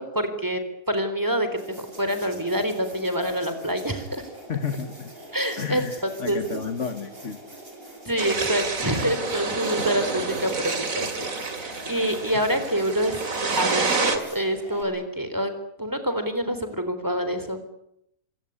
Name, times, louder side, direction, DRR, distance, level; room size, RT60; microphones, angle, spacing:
voice 1, 0.0-4.3 5.3-6.6 8.1-15.5 15.8-17.6, equal, 10° right, 9 dB, 3.8 m, -27 dB
sound 1, 1.6-14.8, right 1 dB, 35° right, 5.7 m, -44 dB
voice 2, 4.5-5.1 5.6-7.4 10.3-10.4, left 6 dB, 50° left, 9 dB, 1.6 m, -31 dB
sound 2, 8.2-14.2, right 4 dB, 60° right, 2.9 m, -28 dB
26.5 x 17.5 x 9.9 m, 0.76 s
omnidirectional pair, 1.7 m